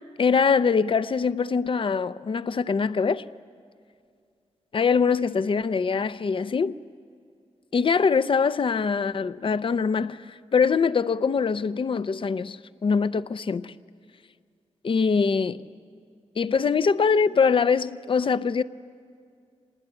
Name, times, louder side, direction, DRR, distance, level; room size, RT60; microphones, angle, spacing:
voice 1, 0.2-3.2 4.7-6.8 7.7-13.7 14.8-15.6 16.4-18.6, left 5 dB, 50° left, 0.5 m, -23 dB
26.5 x 20.0 x 9.7 m
wide cardioid pair, 170°, 12 cm